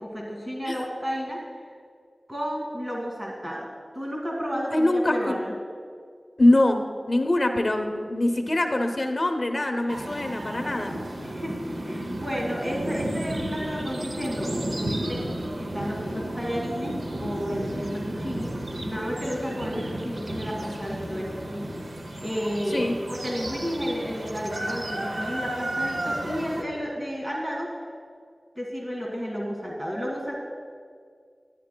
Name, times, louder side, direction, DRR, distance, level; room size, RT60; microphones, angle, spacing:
voice 1, 0.0-1.6 2.3-5.5 11.2-11.6 11.8-15.2 15.6-18.5 18.8-21.7 22.2-27.7 28.6-30.4, equal, 35° right, -1 dB, 1.8 m, -32 dB
voice 2, 4.7-5.3 6.4-10.9 22.7-22.9, left 1 dB, 55° left, 5 dB, 0.7 m, -23 dB
sound 1, 9.9-26.6, right 1 dB, 80° right, 0.7 m, -33 dB
11.0 x 9.4 x 2.2 m, 2.1 s
cardioid pair, 40°, 0 cm